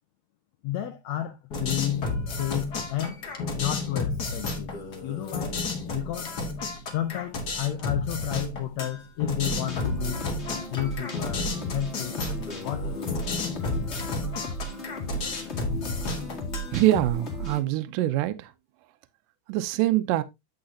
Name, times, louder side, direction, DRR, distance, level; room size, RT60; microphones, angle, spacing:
voice 1, 0.6-3.2 3.5-4.7 5.0-5.6 5.9-6.3 6.9-10.2 10.7-13.2, left 12 dB, 80° left, 1.6 m, -32 dB
sound 1, 1.5-17.0, left 3 dB, 45° left, 1.3 m, -32 dB
sound 2, 9.4-17.6, right 1 dB, 25° left, 1.6 m, -35 dB
voice 2, 16.7-18.5 19.5-20.2, right 15 dB, 85° right, 2.2 m, -24 dB
8.8 x 7.9 x 2.7 m
omnidirectional pair, 3.9 m